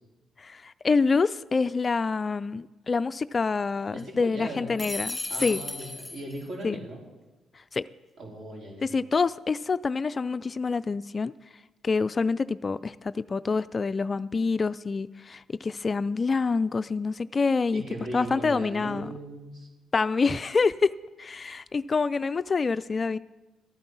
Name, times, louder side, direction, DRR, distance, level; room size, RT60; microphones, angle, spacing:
voice 1, 0.4-5.6 6.6-6.8 7.7-7.8 8.8-11.3 11.8-17.8 18.1-19.1 19.9-20.9 21.2-23.2, left 4 dB, 35° left, 15 dB, 0.3 m, -26 dB
voice 2, 3.9-4.8 5.3-7.0 8.2-8.9 17.7-19.7, right 1 dB, 60° right, -2 dB, 4.2 m, -38 dB
sound 1, 4.8-6.5, left 2 dB, 15° left, 1.2 m, -34 dB
13.5 x 9.4 x 6.2 m, 1.1 s
cardioid pair, 90°, 0 cm